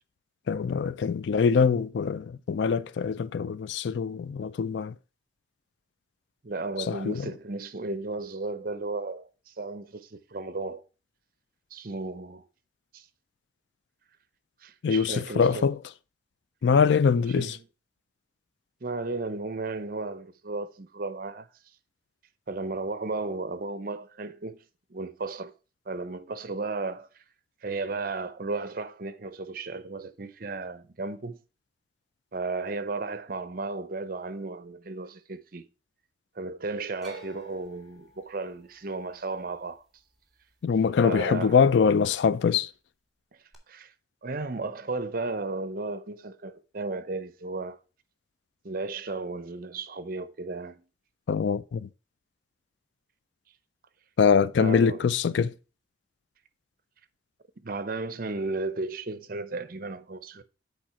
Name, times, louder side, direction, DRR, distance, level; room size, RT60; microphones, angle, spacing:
voice 1, 0.5-4.9 6.9-7.3 14.8-15.8 16.6-17.6 40.6-42.7 51.3-51.9 54.2-55.5, left 6 dB, 75° left, 0.4 m, -23 dB
voice 2, 6.4-10.8 11.7-12.4 12.9-13.1 14.6-15.7 17.3-17.7 18.8-21.5 22.5-24.6 24.9-25.5 25.9-27.2 27.6-31.4 32.3-35.7 36.4-39.8 41.0-41.6 43.3-43.4 43.7-43.9 44.2-47.8 48.6-50.9 54.6-55.0 57.6-60.4, right 3 dB, 50° right, 0.7 m, -34 dB
sound 1, 37.0-41.2 41.5-42.2 43.5-43.6, right 2 dB, ahead, 2.1 m, -52 dB
7.6 x 4.8 x 5.7 m
head